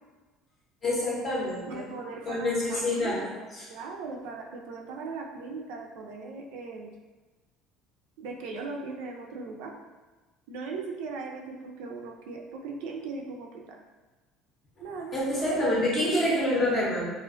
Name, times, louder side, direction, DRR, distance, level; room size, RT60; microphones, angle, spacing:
voice 1, 0.8-1.9 2.3-3.7 14.8-17.1, left 1 dB, 25° left, -6 dB, 0.6 m, -27 dB
voice 2, 1.7-6.9 8.2-9.8 10.5-13.8 14.8-15.2 15.5-16.1, right 4 dB, 80° right, 0 dB, 0.3 m, -39 dB
2.4 x 2.2 x 2.4 m, 1.3 s
cardioid pair, 170°, 0 cm